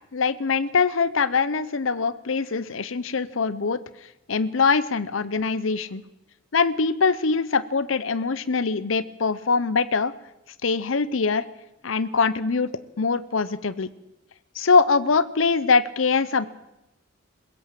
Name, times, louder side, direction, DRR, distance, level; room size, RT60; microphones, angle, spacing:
voice 1, 0.1-3.8 4.3-6.0 6.5-10.1 10.6-11.4 11.8-12.7 13.0-13.9 14.6-16.5, left 4 dB, 80° left, 16 dB, 0.7 m, -23 dB
21.5 x 16.5 x 7.6 m, 0.91 s
head